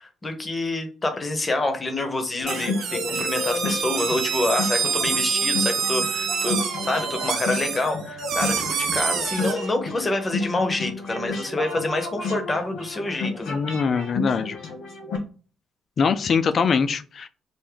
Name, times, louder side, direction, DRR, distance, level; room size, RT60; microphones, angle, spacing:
voice 1, 0.0-13.6, left 2 dB, 20° left, 6 dB, 0.7 m, -27 dB
sound 1, 2.4-15.2, left 3 dB, 85° left, 1.3 m, -32 dB
sound 2, 2.4-9.5, right 7 dB, 70° right, 0.6 m, -27 dB
voice 2, 13.5-14.6 16.0-17.3, left 5 dB, 40° left, 11 dB, 0.4 m, -23 dB
3.4 x 2.5 x 3.6 m, 0.37 s
cardioid pair, 155°, 0 cm